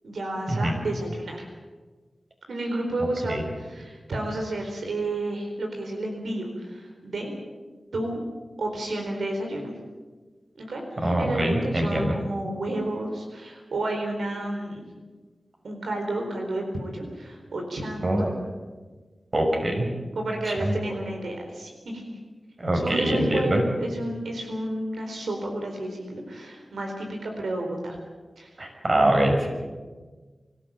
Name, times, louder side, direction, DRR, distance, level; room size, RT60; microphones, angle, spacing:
voice 1, 0.0-1.5 2.5-7.3 7.9-8.2 8.6-9.7 10.6-14.8 15.6-18.3 20.2-22.0 22.7-28.0 28.4-28.5 28.9-29.0, right 1 dB, 90° right, 2 dB, 4.2 m, -31 dB
voice 2, 11.0-12.2 18.0-18.3 19.3-19.9 20.4-20.7 22.6-23.6 28.6-29.5, right 1 dB, 50° right, 2 dB, 6.3 m, -23 dB
24.0 x 14.5 x 9.0 m, 1.3 s
cardioid pair, 45°, 0 cm